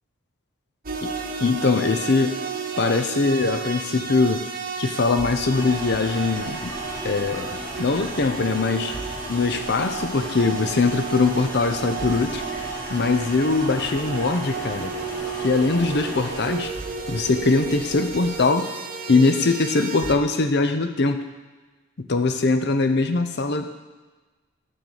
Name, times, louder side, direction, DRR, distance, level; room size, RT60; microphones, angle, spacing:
sound 1, 0.8-20.1, right 5 dB, 40° right, 0.8 m, -33 dB
voice 1, 1.4-2.4 2.8-4.4 4.8-6.8 7.0-9.0 9.3-12.4 12.9-14.9 15.4-16.7 17.1-18.7 19.1-21.2 22.1-23.7, left 3 dB, 55° left, 8 dB, 0.6 m, -22 dB
sound 2, 5.5-18.4, equal, 15° left, 1.6 m, -36 dB
9.1 x 4.0 x 6.8 m, 1.3 s
head